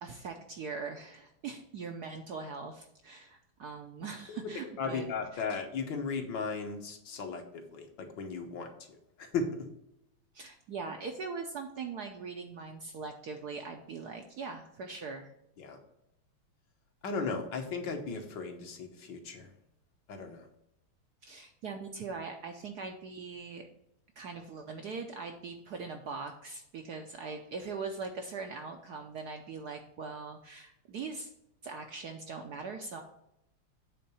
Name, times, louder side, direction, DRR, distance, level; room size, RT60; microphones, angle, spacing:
voice 1, 0.0-5.1 10.3-15.3 21.2-23.7 24.2-31.3 31.6-33.0, right 4 dB, 65° right, 4 dB, 1.0 m, -41 dB
voice 2, 4.3-9.7 15.6-15.8 17.0-19.5 20.1-20.5, left 4 dB, 60° left, 4 dB, 1.6 m, -36 dB
8.5 x 3.7 x 6.9 m, 0.82 s
omnidirectional pair, 2.4 m